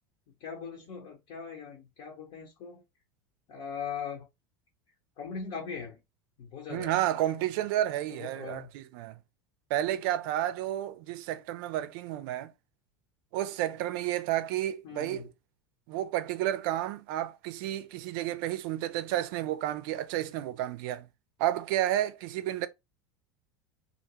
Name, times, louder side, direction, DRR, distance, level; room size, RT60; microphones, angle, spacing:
voice 1, 0.4-2.8 3.5-4.3 5.2-6.0 6.4-7.0 8.2-8.7 14.8-15.3, left 6 dB, 55° left, 0.9 m, -40 dB
voice 2, 6.7-9.2 9.7-12.5 13.3-15.3 15.9-21.1 21.4-22.7, right 13 dB, 60° right, 0.4 m, -31 dB
2.5 x 2.2 x 2.9 m
hypercardioid pair, 85°, 13 cm